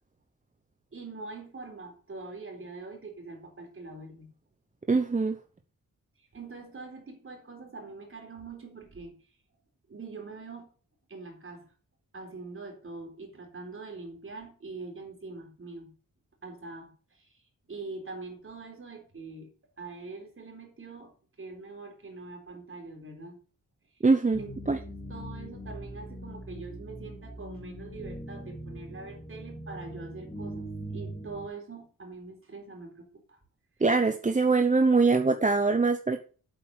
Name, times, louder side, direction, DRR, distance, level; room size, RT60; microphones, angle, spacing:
voice 1, 0.9-4.3 6.3-9.1 9.9-10.7 11.1-11.7 12.1-15.9 16.4-17.4 17.7-19.5 19.8-21.1 21.4-23.4 24.4-33.4, right 3 dB, 35° right, 2 dB, 4.0 m, -43 dB
voice 2, 4.9-5.4 24.0-24.4 24.7-24.8 33.8-36.2, right 3 dB, 20° right, 7 dB, 0.8 m, -23 dB
sound 1, 24.3-31.5, right 1 dB, 15° left, 2.6 m, -41 dB
8.5 x 7.8 x 6.7 m, 0.39 s
wide cardioid pair, 145°, 35 cm